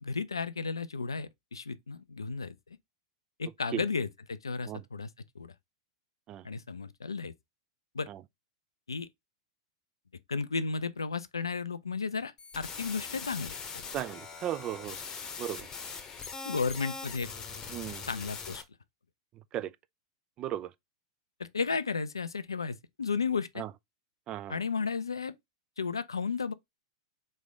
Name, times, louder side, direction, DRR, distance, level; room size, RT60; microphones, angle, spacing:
voice 1, 0.0-2.5 3.4-5.1 5.4-5.5 6.4-7.3 7.9-8.1 8.9-9.1 10.3-13.8 16.4-17.3 18.1-18.6 21.4-23.6 24.5-25.3 25.8-26.5, left 5 dB, 80° left, 0.4 m, -33 dB
sound 1, 12.4-18.6, left 5 dB, 25° left, 0.9 m, -41 dB
voice 2, 13.9-15.0 15.4-15.7 17.7-18.0 19.5-19.7 20.4-20.7 23.6-23.7 24.3-24.6, right 12 dB, 35° right, 0.4 m, -36 dB
4.0 x 3.2 x 3.4 m
figure-of-eight pair, 95°, 2 cm